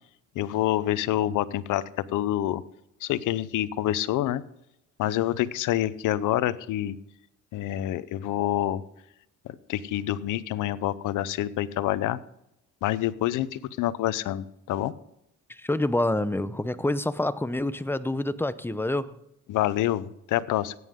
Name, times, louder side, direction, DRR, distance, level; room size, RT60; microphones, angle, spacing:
voice 1, 0.4-1.8 2.1-2.6 3.0-4.4 5.0-7.0 7.5-8.8 9.7-12.2 12.8-14.9 19.5-20.7, left 13 dB, 85° left, 0.7 m, -27 dB
voice 2, 15.5-19.1, left 1 dB, 5° left, 0.7 m, -27 dB
16.5 x 9.6 x 3.7 m
cardioid pair, 90°, 30 cm